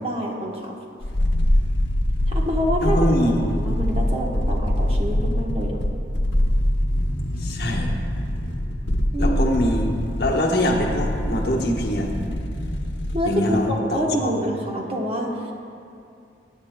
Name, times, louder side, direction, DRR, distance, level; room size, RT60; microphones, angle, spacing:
voice 1, 0.0-0.7 2.3-5.8 9.1-9.6 13.1-15.5, equal, 30° right, -1 dB, 1.1 m, -27 dB
sound 1, 1.0-13.4 13.7-13.8, left 1 dB, 85° left, 0.9 m, -24 dB
voice 2, 2.8-3.4 7.4-7.9 9.2-9.9 10.2-12.1 13.2-14.3, left 1 dB, 60° left, 0 dB, 1.1 m, -23 dB
17.0 x 9.1 x 2.2 m, 2.6 s
head